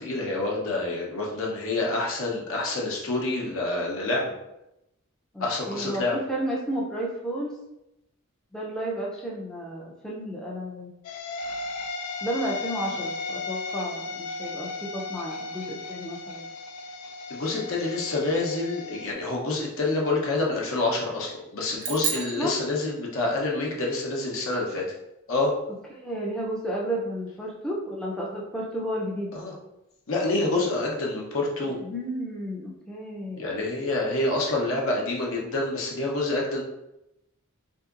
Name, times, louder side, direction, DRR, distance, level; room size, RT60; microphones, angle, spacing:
voice 1, 0.0-4.3 5.4-6.2 17.3-24.8 25.3-25.5 29.3-29.5 30.1-31.7 33.4-36.6, left 2 dB, 70° left, -2 dB, 0.8 m, -27 dB
voice 2, 5.3-7.6 8.5-10.9 12.2-16.4 22.4-22.6 25.9-29.3 31.6-33.4, right 1 dB, 5° left, -4 dB, 0.4 m, -32 dB
sound 1, 11.0-19.1, left 3 dB, 90° left, 0.3 m, -36 dB
sound 2, 21.8-23.5, right 5 dB, 80° right, 0.6 m, -32 dB
3.6 x 2.7 x 2.4 m, 0.89 s
head